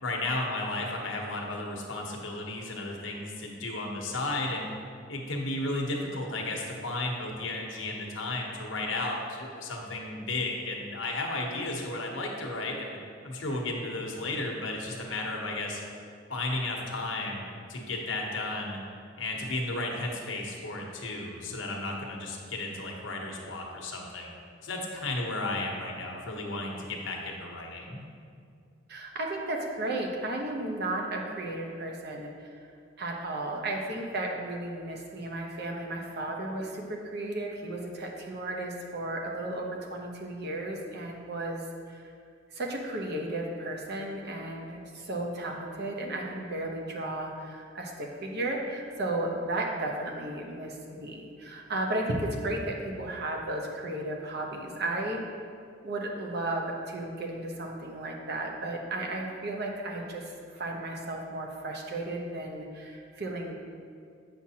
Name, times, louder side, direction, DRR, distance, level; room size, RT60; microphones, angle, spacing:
voice 1, 0.0-4.7 5.1-13.0 13.2-15.8 16.3-18.8 19.2-24.3 24.6-28.0, left 2 dB, 85° left, 0 dB, 1.0 m, -34 dB
voice 2, 28.9-32.5 33.0-41.6 41.9-42.1 42.5-55.2 55.8-63.5, right 2 dB, 60° right, 0 dB, 0.9 m, -34 dB
7.9 x 5.9 x 2.8 m, 2.3 s
head